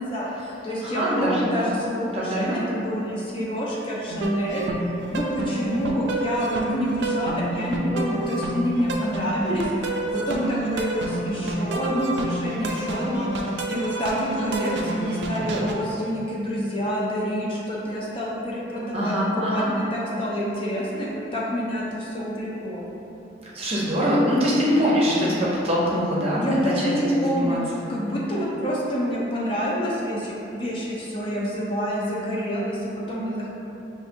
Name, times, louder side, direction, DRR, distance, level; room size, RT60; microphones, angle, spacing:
voice 1, 0.0-4.7 5.1-9.7 10.1-13.3 13.7-22.8 26.4-33.5, equal, 30° left, -6 dB, 0.6 m, -27 dB
voice 2, 0.8-1.8 2.1-2.6 18.9-19.7 23.5-27.6, equal, 35° right, -6 dB, 0.7 m, -23 dB
sound 1, 4.1-15.7, right 2 dB, 75° right, 0.4 m, -28 dB
6.2 x 2.5 x 2.6 m, 2.9 s
head